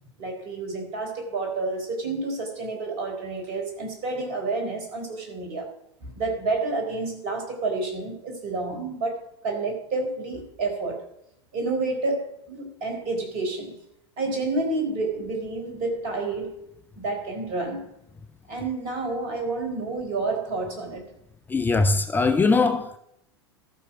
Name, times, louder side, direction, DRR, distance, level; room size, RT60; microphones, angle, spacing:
voice 1, 0.2-5.7 6.0-11.1 11.5-13.7 14.2-16.6 17.0-17.9 18.5-21.1, right 3 dB, 45° right, 4.1 m, -29 dB
voice 2, 21.5-23.0, left 3 dB, 15° left, 0.7 m, -21 dB
14.0 x 6.2 x 6.1 m
figure-of-eight pair, 85°, 14 cm